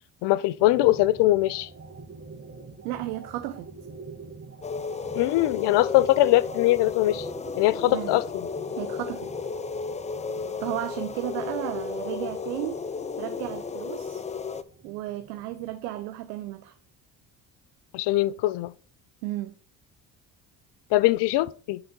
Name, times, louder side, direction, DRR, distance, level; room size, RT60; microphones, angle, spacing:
voice 1, 0.2-1.7 5.1-7.3 7.6-8.5 17.9-18.7 20.9-21.8, left 16 dB, 60° left, 0.6 m, -22 dB
sound 1, 0.6-16.7, right 4 dB, 25° right, 1.6 m, -46 dB
voice 2, 2.8-3.7 7.9-8.2 8.8-9.3 10.6-12.8 13.2-14.2 14.8-16.7 19.2-19.6, right 14 dB, 75° right, 0.7 m, -33 dB
sound 2, 4.6-14.6, left 5 dB, 15° left, 0.4 m, -34 dB
7.9 x 4.0 x 5.2 m
hypercardioid pair, 55°, 48 cm